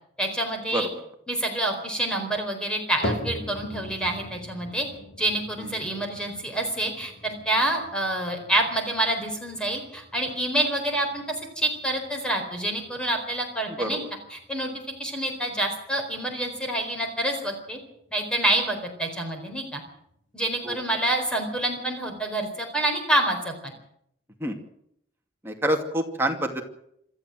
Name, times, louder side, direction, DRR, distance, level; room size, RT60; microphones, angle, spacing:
voice 1, 0.2-0.9 1.3-4.9 5.2-11.2 11.6-14.0 14.3-14.7 15.0-17.8 18.1-19.8 20.3-23.7, right 1 dB, 5° left, 3 dB, 4.2 m, -27 dB
voice 2, 0.7-1.1 5.6-5.7 13.7-14.0 20.6-20.8 24.4-24.6 25.4-26.6, right 1 dB, 10° right, 2 dB, 2.4 m, -27 dB
sound 1, 3.0-19.3 19.7-20.2 20.8-20.9 21.7-21.8, equal, 80° left, 4.1 m, -41 dB
26.5 x 13.5 x 7.7 m, 0.73 s
head